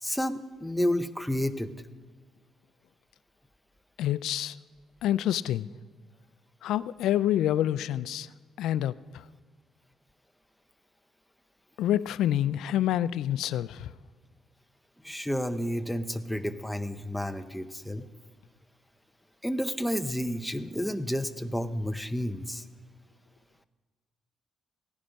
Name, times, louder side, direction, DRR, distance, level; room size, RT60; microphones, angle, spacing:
voice 1, 0.0-1.7 15.0-18.0 19.4-22.6, equal, 5° left, 10 dB, 0.7 m, -31 dB
voice 2, 4.0-4.6 5.0-5.7 6.6-8.3 8.6-8.9 11.8-13.9, left 12 dB, 85° left, 18 dB, 0.3 m, -27 dB
16.5 x 9.8 x 5.2 m, 1.4 s
cardioid pair, 90°, 0 cm